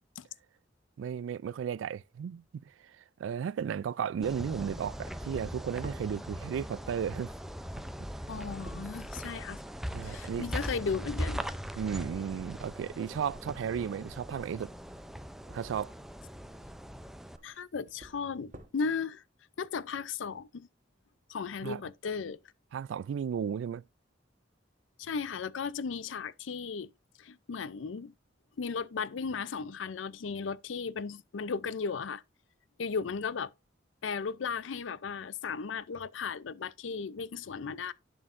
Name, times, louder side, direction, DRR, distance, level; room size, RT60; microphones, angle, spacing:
voice 1, 1.0-2.4 3.2-7.3 8.7-8.8 9.9-10.4 11.8-14.7 15.5-15.9 21.6-21.8 22.7-23.8, right 7 dB, 85° right, 0.3 m, -34 dB
sound 1, 4.2-17.4, equal, ahead, 0.5 m, -40 dB
sound 2, 5.1-15.7 16.5-17.0 17.2-18.7, right 1 dB, 40° right, 1.2 m, -53 dB
voice 2, 8.3-9.6 10.0-11.5 17.4-19.2 19.6-20.7 21.3-22.4 25.0-26.9 27.2-28.1 28.6-32.2 32.8-33.5 34.0-37.9, left 5 dB, 90° left, 0.5 m, -36 dB
11.0 x 6.2 x 2.5 m
head